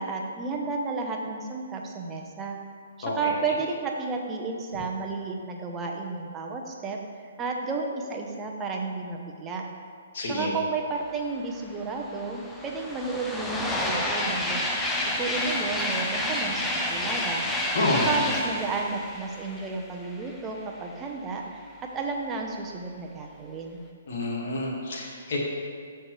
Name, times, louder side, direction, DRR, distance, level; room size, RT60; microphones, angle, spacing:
voice 1, 0.0-2.6 3.0-7.0 7.4-9.7 10.2-14.6 15.2-17.4 17.9-23.8, right 4 dB, 20° right, 1 dB, 1.0 m, -32 dB
voice 2, 10.1-10.5 17.7-18.1 24.1-25.4, left 2 dB, 50° left, -3 dB, 2.1 m, -28 dB
sound 1, 11.5-11.6 11.8-20.5, left 1 dB, 5° left, 0.8 m, -30 dB
13.5 x 4.6 x 3.3 m, 2.1 s
figure-of-eight pair, 125°, 0 cm